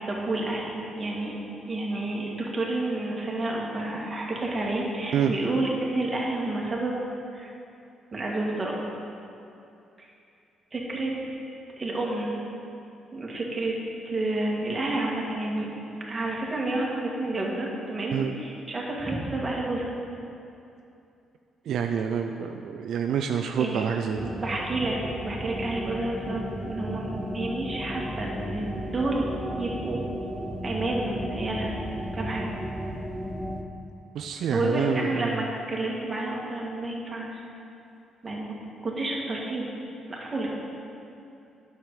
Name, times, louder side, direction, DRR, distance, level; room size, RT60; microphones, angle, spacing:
voice 1, 0.1-1.4 1.7-6.9 7.3-7.5 8.1-8.8 10.0-10.1 10.7-11.2 11.8-12.4 13.1-13.8 14.1-15.7 16.1-19.9 23.6-23.8 24.1-29.3 29.6-30.0 30.6-31.8 32.1-32.5 34.5-37.3 38.2-38.6 38.8-39.7 40.1-40.5, right 2 dB, 25° right, -3 dB, 1.9 m, -30 dB
voice 2, 21.7-24.3 34.1-35.5, right 8 dB, 70° right, 5 dB, 0.4 m, -27 dB
sound 1, 24.2-33.6, equal, 5° right, 0.7 m, -34 dB
9.2 x 6.8 x 4.8 m, 2.7 s
cardioid pair, 90°, 0 cm